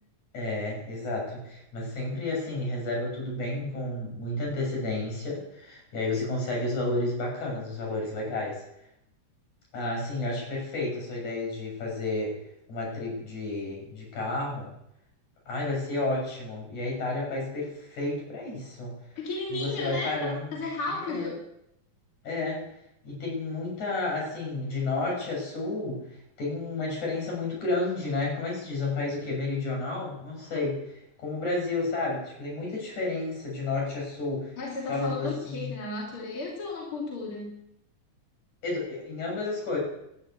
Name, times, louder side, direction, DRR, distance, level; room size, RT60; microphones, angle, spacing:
voice 1, 0.3-8.6 9.7-12.3 12.7-14.7 15.5-18.9 19.5-20.6 21.0-21.3 22.2-22.6 23.0-26.0 26.4-34.5 34.9-35.8 38.6-39.8, left 2 dB, 70° left, -2 dB, 8.1 m, -31 dB
voice 2, 19.2-21.4 34.6-37.6, left 2 dB, 45° left, -3 dB, 3.6 m, -34 dB
12.5 x 12.0 x 8.4 m, 0.80 s
omnidirectional pair, 3.6 m